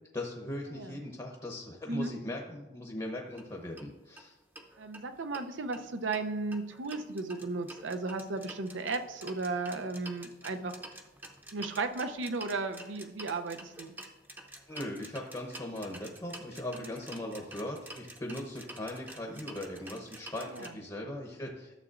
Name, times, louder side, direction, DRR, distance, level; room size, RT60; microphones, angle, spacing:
voice 1, 0.1-4.3 14.7-21.7, left 1 dB, 20° left, 0 dB, 0.8 m, -39 dB
sound 1, 3.3-3.4 3.8-3.9 4.2-4.3 4.6-5.5 5.7-20.7, right 1 dB, 10° right, 0.6 m, -48 dB
voice 2, 4.8-10.7 11.5-13.9 16.8-17.0 20.5-20.7, right 3 dB, 90° right, 8 dB, 0.6 m, -35 dB
12.0 x 7.1 x 2.5 m, 1.1 s
head